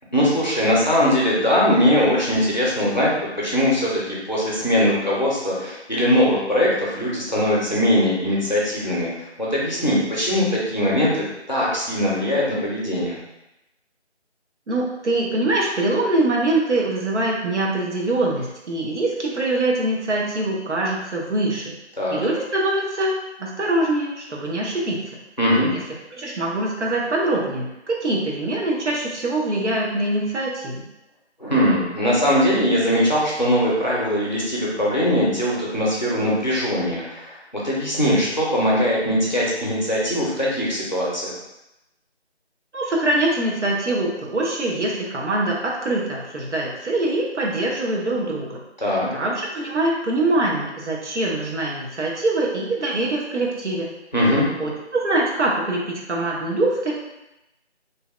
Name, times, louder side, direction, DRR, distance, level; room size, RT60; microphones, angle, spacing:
voice 1, 0.1-3.1 3.4-9.1 9.4-13.1 22.0-22.2 25.4-25.7 31.4-37.4 37.6-41.3 48.8-49.1 54.1-54.4, equal, 40° left, -6 dB, 0.5 m, -21 dB
voice 2, 14.7-21.7 22.1-23.1 23.4-25.0 26.1-30.8 42.7-48.6 49.1-53.9 54.6-56.9, right 2 dB, 85° right, -2 dB, 0.8 m, -23 dB
2.7 x 2.0 x 2.3 m, 0.93 s
figure-of-eight pair, 180°, 34 cm